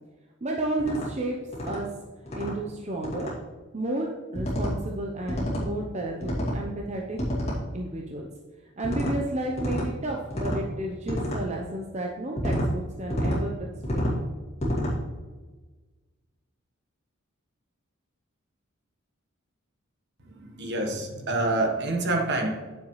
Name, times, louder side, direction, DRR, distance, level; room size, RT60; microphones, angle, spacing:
voice 1, 0.4-1.4 1.6-1.9 2.3-3.3 3.7-7.2 7.7-8.3 8.8-13.5 13.9-14.3, right 2 dB, 30° right, 0 dB, 0.8 m, -32 dB
sound 1, 0.8-1.1 1.5-1.8 2.3-2.5 3.0-3.3 4.3-4.7 5.3-5.7 6.2-6.6 7.2-7.6 8.8-9.1 9.6-9.9 10.3-10.6 11.1-11.4 12.4-12.7 13.1-13.4 13.8-14.2 14.6-14.9, equal, 30° left, 2.5 m, -28 dB
voice 2, 20.4-22.6, right 2 dB, 55° right, 3 dB, 1.4 m, -27 dB
9.2 x 7.0 x 3.2 m, 1.3 s
head